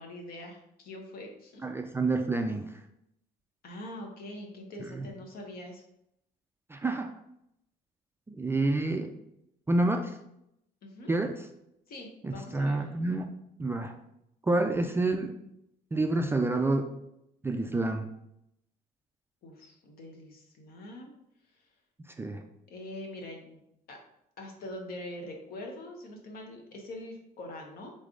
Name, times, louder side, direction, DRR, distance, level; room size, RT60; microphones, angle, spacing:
voice 1, 0.0-1.8 3.6-5.8 10.8-11.1 11.9-12.8 19.4-21.1 22.7-23.6 23.9-24.0 24.4-27.9, left 1 dB, 60° left, 2 dB, 1.1 m, -43 dB
voice 2, 1.6-2.7 4.9-5.1 6.7-7.1 8.3-9.1 9.7-10.2 11.1-11.5 12.2-13.3 13.6-13.9 14.4-15.3 15.9-16.9 17.4-18.1 22.2-22.4, right 2 dB, 15° right, 4 dB, 0.3 m, -28 dB
4.0 x 3.3 x 3.7 m, 0.80 s
cardioid pair, 110°, 17 cm